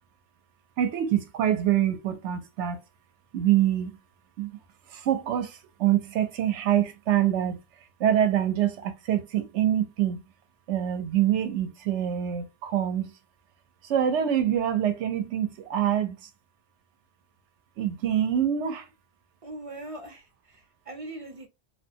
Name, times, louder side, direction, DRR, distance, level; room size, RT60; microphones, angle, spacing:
voice 1, 0.8-2.8 3.3-4.0 4.4-4.6 4.9-7.6 8.0-10.2 10.7-13.1 13.8-16.2 17.8-18.9, right 10 dB, 90° right, 0.9 m, -25 dB
voice 2, 19.4-21.5, right 2 dB, 40° right, 0.6 m, -41 dB
3.0 x 2.2 x 2.7 m
omnidirectional pair, 1.2 m